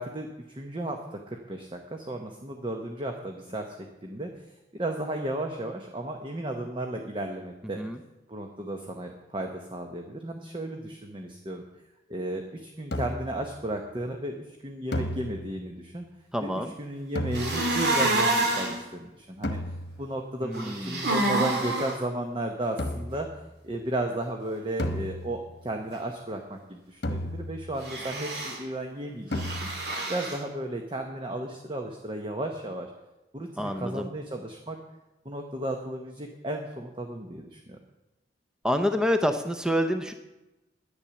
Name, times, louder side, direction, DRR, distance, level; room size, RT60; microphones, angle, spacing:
voice 1, 0.0-3.8 4.0-4.4 4.7-7.8 8.3-11.6 12.1-16.0 16.4-19.6 20.0-23.3 23.6-29.7 30.1-32.9 33.3-34.8 35.2-37.8, right 1 dB, 25° right, 3 dB, 0.9 m, -34 dB
sound 1, 12.9-13.5 14.9-15.8 17.1-17.9 19.4-20.1 22.8-23.3 24.8-25.7 27.0-27.8 29.3-30.0, left 1 dB, 65° left, 1.1 m, -33 dB
voice 2, 16.3-16.7 20.4-21.1 33.6-34.1 38.6-40.1, equal, 5° right, 7 dB, 0.6 m, -27 dB
sound 2, 17.3-18.8 20.5-21.9 27.8-28.6 29.3-30.4, right 2 dB, 65° right, 2.7 m, -27 dB
10.5 x 9.9 x 7.0 m, 1.0 s
head